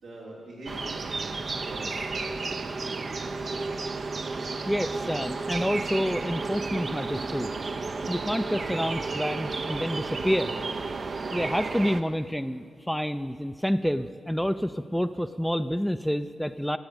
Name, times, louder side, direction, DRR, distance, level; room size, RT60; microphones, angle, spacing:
voice 1, 0.0-2.7, right 1 dB, 85° right, -6 dB, 4.1 m, -43 dB
sound 1, 0.7-12.0, right 3 dB, 55° right, 0.8 m, -32 dB
voice 2, 4.7-7.5 8.1-10.5 11.3-16.8, equal, ahead, 9 dB, 0.5 m, -28 dB
17.0 x 7.9 x 7.2 m, 2.3 s
supercardioid pair, 45°, 0 cm